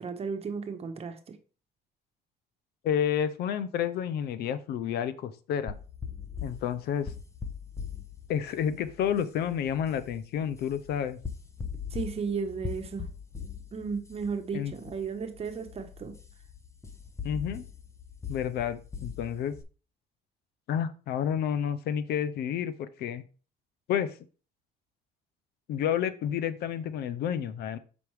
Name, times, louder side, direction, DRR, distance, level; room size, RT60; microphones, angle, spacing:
voice 1, 0.0-1.4 11.9-13.1 13.7-16.2, right 5 dB, 35° right, 1.2 m, -34 dB
voice 2, 2.8-5.7 6.4-7.1 8.3-11.2 14.5-14.7 17.2-17.6 18.3-19.5 20.7-23.2 23.9-24.2 25.7-27.8, left 9 dB, 70° left, 0.7 m, -30 dB
sound 1, 5.7-19.6, left 6 dB, 15° left, 0.9 m, -41 dB
7.0 x 5.2 x 3.2 m
cardioid pair, 110°, 17 cm